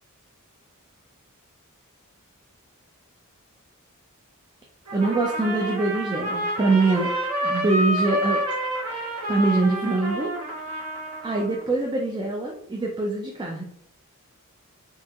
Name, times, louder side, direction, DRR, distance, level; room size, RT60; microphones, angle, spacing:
voice 1, 4.9-7.1 7.4-8.4 9.3-10.3 11.2-13.6, right 3 dB, 20° right, 0 dB, 0.4 m, -23 dB
Trumpet, 4.9-11.6, right 1 dB, 90° right, 0.9 m, -29 dB
4.2 x 2.8 x 2.4 m, 0.70 s
head